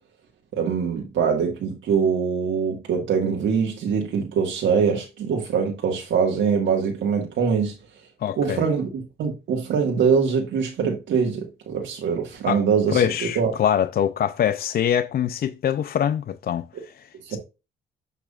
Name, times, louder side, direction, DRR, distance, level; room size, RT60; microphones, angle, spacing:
voice 1, 0.5-7.7 8.4-13.5 17.2-17.4, right 6 dB, 75° right, 1.7 m, -23 dB
voice 2, 8.2-8.6 12.5-12.6 12.9-17.0 17.3-17.4, left 9 dB, 50° left, 0.5 m, -24 dB
7.0 x 5.9 x 2.4 m
cardioid pair, 90°, 20 cm